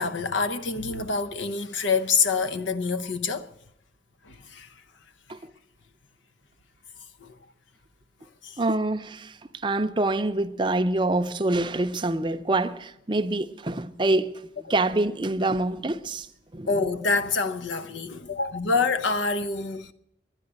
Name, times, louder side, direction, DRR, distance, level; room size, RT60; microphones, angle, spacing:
voice 1, 0.0-3.5 4.2-4.7 7.2-7.4 8.4-8.6 16.7-19.9, left 4 dB, 85° left, 0.7 m, -26 dB
voice 2, 8.6-14.4 14.7-16.3 16.5-16.7, right 2 dB, 25° right, 0.5 m, -26 dB
11.5 x 9.8 x 9.7 m
head